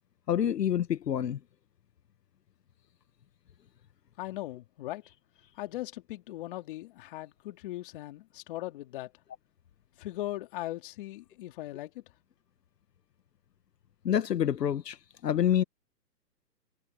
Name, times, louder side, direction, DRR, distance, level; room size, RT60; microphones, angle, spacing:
voice 1, 0.3-1.4 14.0-15.6, left 10 dB, 70° left, 1.3 m, -27 dB
voice 2, 4.2-5.1 5.6-9.1 10.0-12.0, left 16 dB, 30° left, 3.2 m, -39 dB
hypercardioid pair, 165°, 50 cm